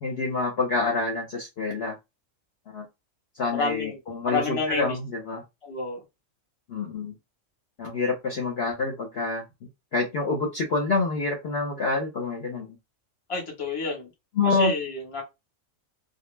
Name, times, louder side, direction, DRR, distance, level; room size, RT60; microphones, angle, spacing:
voice 1, 0.0-2.0 2.7-2.9 3.3-5.4 6.7-7.1 7.8-9.4 9.9-12.8 14.4-14.7, left 3 dB, 55° left, 0.8 m, -27 dB
voice 2, 3.5-4.0 4.3-5.0 5.6-6.0 13.3-14.1 14.4-15.2, left 3 dB, 25° left, 0.9 m, -29 dB
2.2 x 2.0 x 3.2 m
omnidirectional pair, 1.4 m